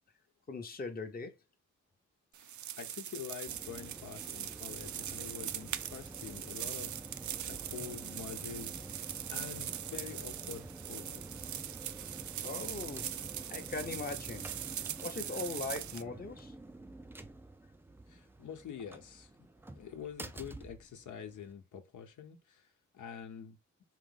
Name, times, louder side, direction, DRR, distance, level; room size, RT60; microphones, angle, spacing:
voice 1, 0.5-1.3 12.4-13.1 13.5-14.5 15.0-16.5, left 3 dB, 30° left, 0.8 m, -40 dB
sound 1, 2.3-16.0, right 11 dB, 75° right, 0.5 m, -41 dB
voice 2, 2.4-6.9 7.4-11.2 18.1-19.3 19.7-22.7 22.9-23.6, left 7 dB, 80° left, 1.0 m, -46 dB
sound 2, 3.5-21.5, right 2 dB, 10° right, 0.4 m, -49 dB
4.6 x 3.0 x 3.7 m
wide cardioid pair, 150°, 30 cm